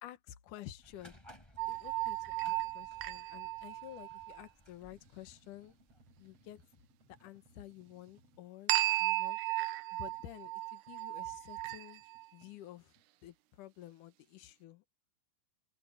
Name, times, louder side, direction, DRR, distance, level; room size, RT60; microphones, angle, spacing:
voice 1, 0.0-1.2 1.7-5.7 6.2-6.6 7.1-9.4 9.9-12.0 12.3-12.9 13.2-14.8, left 12 dB, 70° left, 2.8 m, -51 dB
sound 1, 0.6-3.5 4.8-8.5 10.1-13.1, right 1 dB, 45° right, 9.1 m, -68 dB
sound 2, 0.8-6.7, left 1 dB, 5° left, 5.2 m, -60 dB
sound 3, 1.6-4.4 8.7-12.3, right 17 dB, 75° right, 2.0 m, -35 dB
open air
omnidirectional pair, 4.0 m